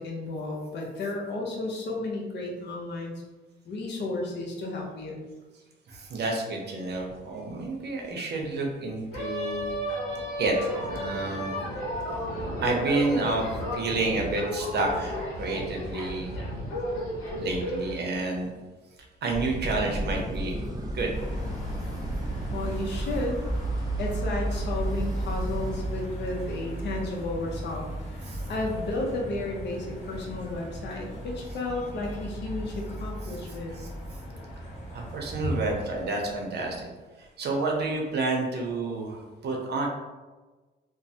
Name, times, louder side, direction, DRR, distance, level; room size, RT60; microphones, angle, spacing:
voice 1, 0.0-3.1 3.6-5.2 22.5-23.4 24.0-27.9 28.1-33.8, left 2 dB, 60° left, 0 dB, 0.7 m, -33 dB
voice 2, 5.9-9.8 10.4-11.6 12.6-13.5 13.7-16.3 17.4-18.5 19.2-20.6 20.9-21.1 28.3-28.4 33.8-33.9 34.9-36.9 37.2-39.9, right 3 dB, 55° right, 1 dB, 0.7 m, -29 dB
sound 1, 9.1-17.9, equal, 90° left, 0.9 m, -33 dB
sound 2, 19.3-25.9, equal, 20° right, 0.5 m, -34 dB
sound 3, 21.1-36.1, right 2 dB, 35° left, 1.0 m, -36 dB
3.1 x 2.1 x 2.7 m, 1.2 s
cardioid pair, 90°, 20 cm